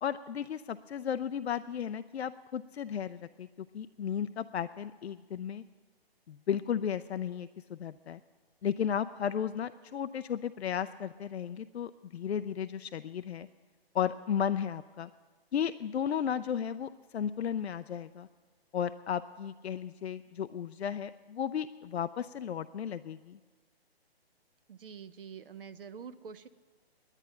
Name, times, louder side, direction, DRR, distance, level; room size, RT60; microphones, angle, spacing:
voice 1, 0.0-5.6 6.3-8.2 8.6-13.5 13.9-15.1 15.5-18.3 18.7-23.4, left 8 dB, 90° left, 12 dB, 0.5 m, -34 dB
voice 2, 24.7-26.5, right 6 dB, 60° right, 13 dB, 0.6 m, -46 dB
10.5 x 9.8 x 9.0 m, 1.4 s
hypercardioid pair, 150°, 31 cm